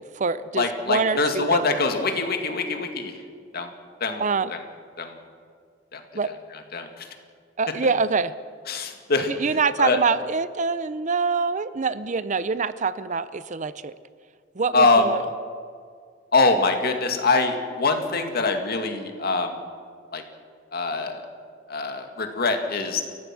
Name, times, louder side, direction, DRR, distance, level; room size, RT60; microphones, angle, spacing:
voice 1, 0.0-1.8 4.2-4.5 6.1-6.3 7.6-8.3 9.3-13.9 14.6-15.2, right 4 dB, 40° right, 15 dB, 0.6 m, -25 dB
voice 2, 0.6-3.1 3.5-3.7 4.0-4.2 4.5-4.6 5.0-5.2 5.9-6.0 6.7-7.1 8.7-10.0 14.7-15.1 16.3-19.6 20.1-20.2 20.7-21.2 21.7-23.0, left 3 dB, 55° left, 5 dB, 2.2 m, -23 dB
29.5 x 15.0 x 6.1 m, 2.1 s
head